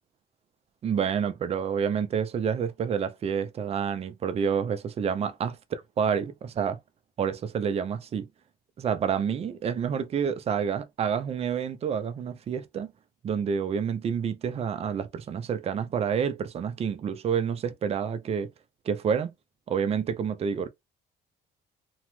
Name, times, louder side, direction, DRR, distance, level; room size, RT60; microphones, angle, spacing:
voice 1, 0.8-6.8 7.2-8.3 8.8-12.9 13.2-18.5 18.8-19.3 19.7-20.7, right 7 dB, 35° right, 0.5 m, -28 dB
2.9 x 2.1 x 3.0 m
cardioid pair, 110°, 17 cm